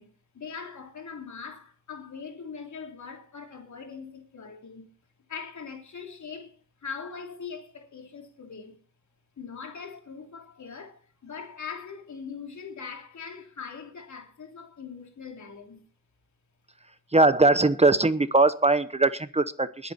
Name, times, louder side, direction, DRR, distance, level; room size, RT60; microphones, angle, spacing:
voice 1, 0.0-4.9 5.3-8.8 9.4-15.8, left 6 dB, 65° left, 3.4 m, -41 dB
voice 2, 17.1-19.9, right 2 dB, 20° right, 0.9 m, -21 dB
20.5 x 8.5 x 4.3 m
cardioid pair, 90°, 31 cm